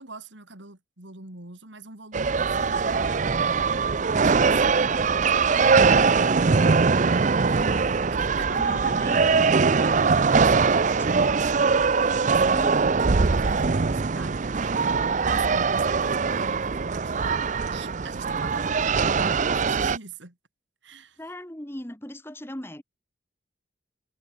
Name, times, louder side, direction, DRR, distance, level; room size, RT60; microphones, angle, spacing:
voice 1, 0.0-3.2 3.7-4.9 5.5-5.9 6.2-6.3 7.5-9.1 10.1-11.7 12.2-13.0 13.3-20.4 20.8-21.2, right 3 dB, 75° right, 3.3 m, -43 dB
sound 1, 2.1-20.0, right 4 dB, 40° right, 0.5 m, -22 dB
voice 2, 8.3-9.4 9.8-10.1 10.6-11.0 12.5-12.9 21.2-22.8, left 1 dB, 10° left, 1.6 m, -38 dB
head